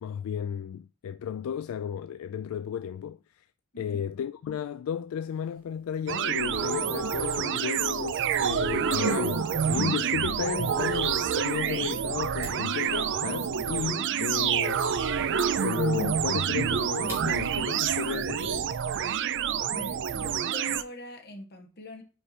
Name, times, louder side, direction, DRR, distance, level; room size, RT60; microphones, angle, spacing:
voice 1, 0.0-3.5 3.8-14.8 15.6-18.7, left 8 dB, 75° left, 0.3 m, -33 dB
voice 2, 3.7-4.1 19.7-22.0, left 2 dB, 50° left, 1.5 m, -43 dB
sound 1, 6.1-20.8, right 8 dB, 60° right, 0.4 m, -28 dB
sound 2, 6.5-8.1 8.6-10.3 10.6-12.2 12.6-16.3 16.6-18.6, right 2 dB, 90° right, 0.8 m, -36 dB
sound 3, 12.3-17.6, right 1 dB, 15° right, 2.5 m, -49 dB
5.4 x 4.8 x 4.4 m
head